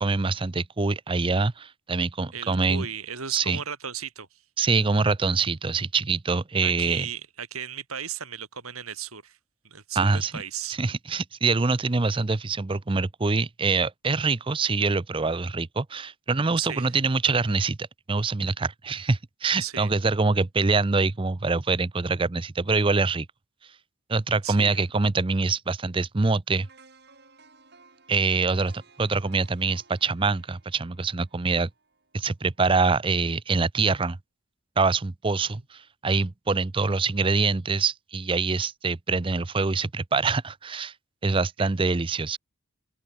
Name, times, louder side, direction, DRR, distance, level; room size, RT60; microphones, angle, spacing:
voice 1, 0.0-2.9 3.3-3.6 4.6-7.1 10.0-10.3 10.8-23.3 24.1-26.7 28.1-31.7 32.1-34.2 34.8-40.9 41.2-42.4, right 4 dB, 25° right, 0.5 m, -25 dB
voice 2, 2.3-4.4 6.6-9.4 9.6-10.8 16.6-17.0 19.6-19.9 24.4-24.8 35.4-35.5 41.6-41.7, right 8 dB, 85° right, 4.2 m, -36 dB
sound 1, 26.6-32.7 33.0-33.2, right 4 dB, 50° right, 7.0 m, -57 dB
head